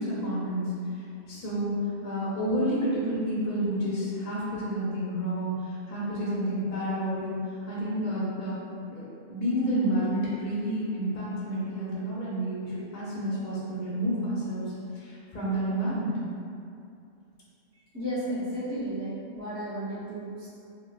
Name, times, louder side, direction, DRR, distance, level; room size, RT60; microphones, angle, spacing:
voice 1, 0.0-1.7 2.0-7.4 7.7-8.6 8.9-16.1, right 1 dB, 40° left, -8 dB, 0.7 m, -30 dB
voice 2, 17.9-20.5, equal, 15° right, -13 dB, 0.6 m, -33 dB
3.9 x 2.2 x 2.3 m, 2.5 s
omnidirectional pair, 1.3 m